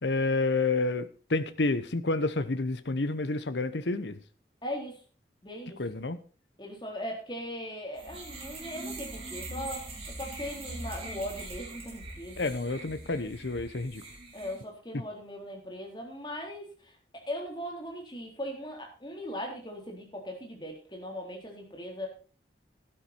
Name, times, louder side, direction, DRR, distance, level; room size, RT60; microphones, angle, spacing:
voice 1, 0.0-4.2 5.8-6.2 12.4-14.0, left 3 dB, 85° left, 12 dB, 0.9 m, -29 dB
voice 2, 4.6-5.0 5.4-5.8 6.6-12.5 14.3-22.1, left 1 dB, 25° left, 0 dB, 4.0 m, -39 dB
sound 1, 8.0-14.6, right 2 dB, 35° right, 4.5 m, -42 dB
12.0 x 11.5 x 4.5 m, 0.38 s
head